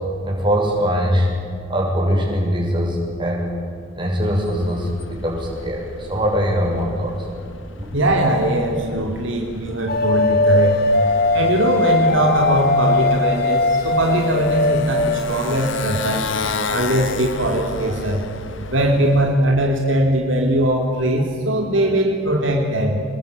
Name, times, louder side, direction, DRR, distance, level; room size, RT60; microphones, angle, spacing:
voice 1, 0.2-1.3 1.7-3.5 4.0-7.2 7.8-7.9, equal, 25° right, -1 dB, 6.9 m, -21 dB
Motorcycle, 4.1-19.5, left 4 dB, 60° left, 1.6 m, -33 dB
voice 2, 7.9-10.8 11.3-16.3 16.7-18.2 18.7-23.0, right 1 dB, 65° right, 1 dB, 3.0 m, -20 dB
sound 1, 9.9-15.2, left 2 dB, 45° left, 1.1 m, -19 dB
27.0 x 20.5 x 9.6 m, 2.3 s
head